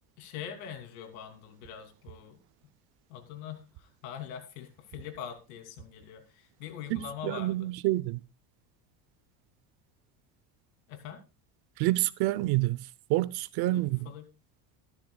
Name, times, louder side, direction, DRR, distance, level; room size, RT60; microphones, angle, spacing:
voice 1, 0.2-2.4 3.1-7.7 10.9-11.2 13.6-14.3, left 9 dB, 85° left, 3.0 m, -43 dB
voice 2, 6.9-8.2 11.8-12.8 13.1-14.0, right 18 dB, 65° right, 0.8 m, -28 dB
14.0 x 13.0 x 2.3 m
cardioid pair, 135°, 41 cm